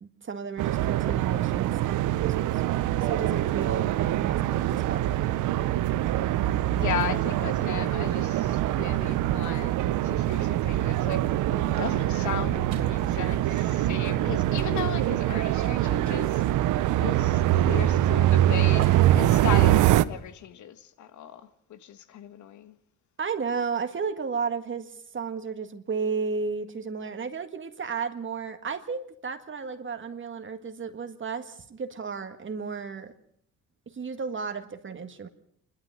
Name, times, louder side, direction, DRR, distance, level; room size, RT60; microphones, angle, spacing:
voice 1, 0.0-2.6 3.0-5.4 23.2-33.1 33.9-35.3, right 5 dB, 40° right, 1.8 m, -33 dB
sound 1, 0.6-20.0, right 13 dB, 85° right, 0.8 m, -24 dB
voice 2, 6.7-11.2 11.5-16.4 17.0-21.4 21.7-22.8, left 9 dB, 70° left, 1.6 m, -36 dB
sound 2, 12.7-20.4, right 7 dB, 70° right, 3.6 m, -45 dB
27.0 x 12.0 x 7.8 m
cardioid pair, 90°, 30 cm